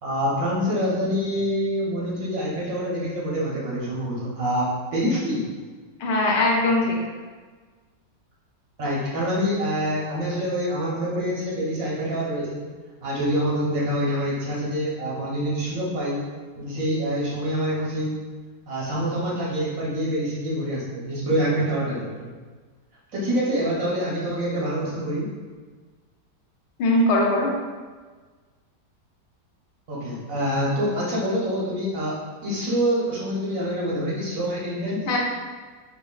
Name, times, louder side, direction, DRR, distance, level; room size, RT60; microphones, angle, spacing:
voice 1, 0.0-5.4 8.8-12.6 13.0-16.2 16.6-18.2 18.7-22.3 23.1-25.3 29.9-32.2 32.4-35.1, equal, 60° right, -6 dB, 1.2 m, -26 dB
voice 2, 6.0-7.0 26.8-27.5 35.1-35.2, left 2 dB, 85° left, -1 dB, 1.3 m, -20 dB
4.1 x 3.3 x 2.3 m, 1.4 s
omnidirectional pair, 1.8 m